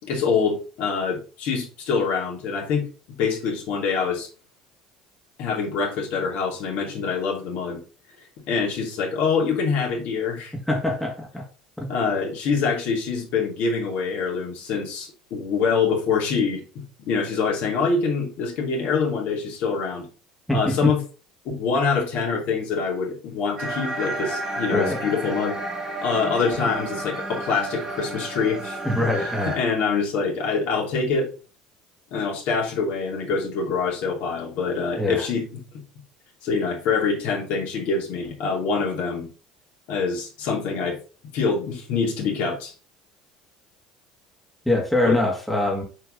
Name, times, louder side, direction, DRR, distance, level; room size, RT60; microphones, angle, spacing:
voice 1, 0.0-2.9 3.2-4.3 5.4-7.8 8.5-10.5 11.9-20.1 20.5-21.0 21.4-25.6 26.0-31.3 32.1-35.6 36.4-39.3 39.9-41.0 41.3-42.7 45.0-45.2, left 5 dB, 60° left, -1 dB, 2.6 m, -25 dB
voice 2, 10.7-11.4 11.8-11.9 20.5-20.9 24.7-25.0 28.8-29.6 35.0-35.3 44.7-45.8, left 1 dB, 5° left, -1 dB, 2.3 m, -23 dB
sound 1, 23.6-29.6, right 2 dB, 20° right, 2.6 m, -31 dB
6.7 x 4.6 x 3.8 m, 0.36 s
hypercardioid pair, 65°, 3 cm